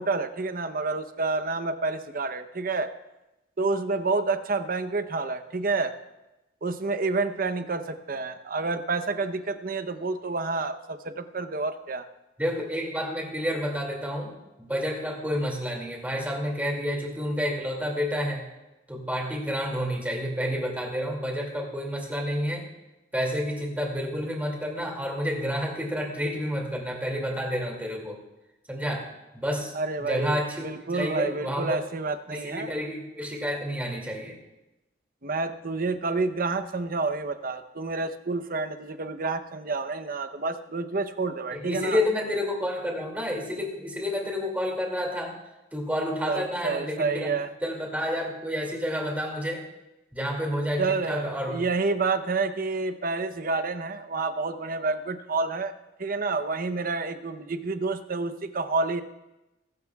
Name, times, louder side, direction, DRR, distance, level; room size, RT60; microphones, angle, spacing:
voice 1, 0.0-2.9 3.6-5.9 6.6-12.0 29.7-32.7 35.2-42.0 46.2-47.5 50.8-55.7 56.0-59.0, right 3 dB, 50° right, 9 dB, 0.8 m, -29 dB
voice 2, 12.4-18.5 18.9-22.7 23.1-28.2 28.7-29.7 30.0-31.8 32.3-34.4 41.5-45.4 45.7-49.7 50.1-51.6, equal, 10° right, 0 dB, 2.5 m, -30 dB
22.0 x 12.0 x 2.4 m, 0.97 s
head